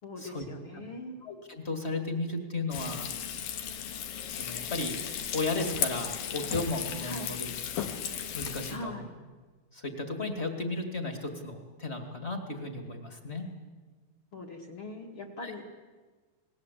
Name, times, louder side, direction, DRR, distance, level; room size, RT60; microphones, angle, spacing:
voice 1, 0.0-1.1 7.0-7.3 8.7-9.1 14.3-15.6, left 2 dB, 40° left, 0 dB, 2.5 m, -41 dB
voice 2, 1.2-3.1 4.3-5.0 5.3-7.5 7.7-8.9 9.7-13.5 15.4-15.5, left 2 dB, 20° left, 5 dB, 2.0 m, -35 dB
Frying (food), 2.7-8.8, left 8 dB, 80° left, 3.4 m, -35 dB
28.0 x 20.0 x 8.3 m, 1.4 s
omnidirectional pair, 4.3 m